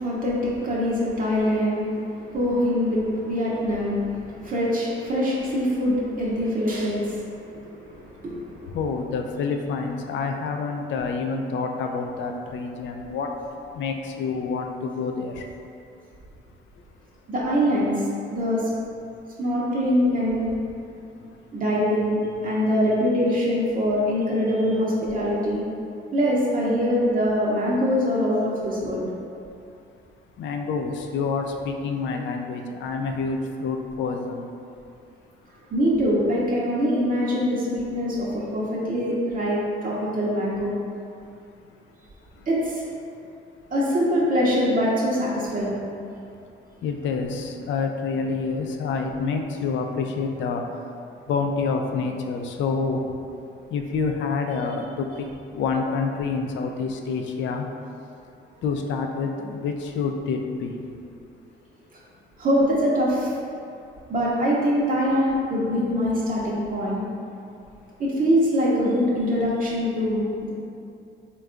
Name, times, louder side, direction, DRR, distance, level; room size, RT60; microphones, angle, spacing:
voice 1, 0.0-8.7 17.3-18.7 19.4-20.5 21.5-25.6 26.1-29.0 35.7-40.7 42.5-42.8 43.7-45.8 62.4-63.3 64.1-67.0 68.0-70.5, equal, 45° right, -6 dB, 0.7 m, -23 dB
voice 2, 8.7-13.3 13.8-15.3 30.4-34.5 46.8-50.6 51.3-53.0 53.7-55.1 55.5-57.6 58.6-60.8, left 4 dB, 70° left, 4 dB, 0.4 m, -27 dB
3.4 x 2.3 x 3.7 m, 2.5 s
cardioid pair, 90°, 20 cm